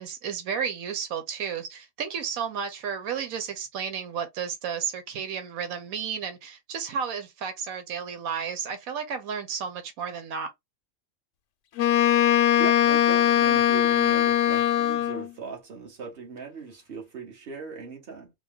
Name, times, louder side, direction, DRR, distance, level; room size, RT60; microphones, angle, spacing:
voice 1, 0.0-10.5, right 7 dB, 90° right, 1.3 m, -32 dB
Wind instrument woodwind instrument, 11.8-15.3, left 11 dB, 70° left, 0.9 m, -21 dB
voice 2, 12.6-18.3, right 5 dB, 45° right, 1.5 m, -39 dB
4.2 x 2.2 x 3.6 m
omnidirectional pair, 1.4 m